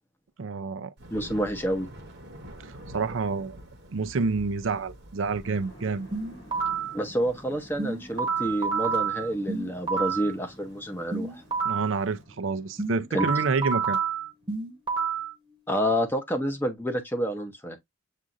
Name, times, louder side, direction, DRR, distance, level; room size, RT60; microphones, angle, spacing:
voice 1, 0.4-0.9 2.6-3.6 3.9-6.1 11.6-14.0, right 4 dB, 70° right, 0.5 m, -28 dB
Thunder, 1.0-12.1, equal, 55° right, 1.0 m, -48 dB
voice 2, 1.1-1.9 6.9-11.4 13.1-13.3 15.7-17.8, equal, 10° left, 0.8 m, -28 dB
sound 1, 5.4-14.5, equal, 60° left, 3.6 m, -51 dB
sound 2, 6.1-7.0 7.8-10.3 11.1-12.0 12.8-15.3, right 5 dB, 25° right, 1.0 m, -29 dB
7.4 x 2.5 x 2.6 m
head